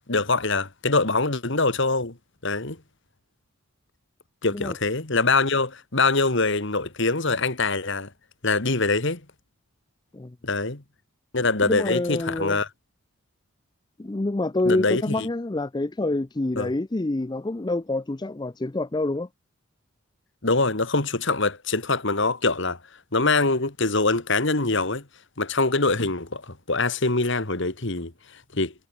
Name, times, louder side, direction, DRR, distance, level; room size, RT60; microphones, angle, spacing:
voice 1, 0.1-2.2 2.4-2.8 4.4-8.1 8.4-9.2 10.4-10.8 11.3-12.7 14.6-15.3 16.6-16.7 20.4-22.8 23.1-25.1 25.4-28.7, left 3 dB, 60° left, 2.2 m, -24 dB
voice 2, 11.6-12.6 14.0-19.3, left 2 dB, 20° left, 0.5 m, -27 dB
head